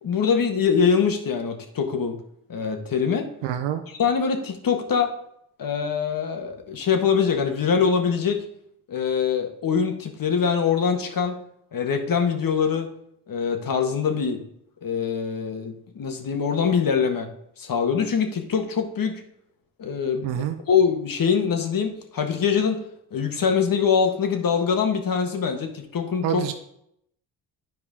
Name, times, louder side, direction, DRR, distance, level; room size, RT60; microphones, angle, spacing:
voice 1, 0.0-2.2 2.5-3.3 4.0-5.1 5.6-8.4 8.9-11.4 11.7-12.9 13.3-14.4 14.8-17.3 17.6-19.2 19.8-22.8 23.1-26.4, left 6 dB, 50° left, 5 dB, 1.5 m, -23 dB
voice 2, 3.4-3.8 20.2-20.6 26.2-26.5, right 10 dB, 80° right, 7 dB, 0.8 m, -26 dB
10.5 x 4.8 x 3.6 m, 0.73 s
supercardioid pair, 65°, 44 cm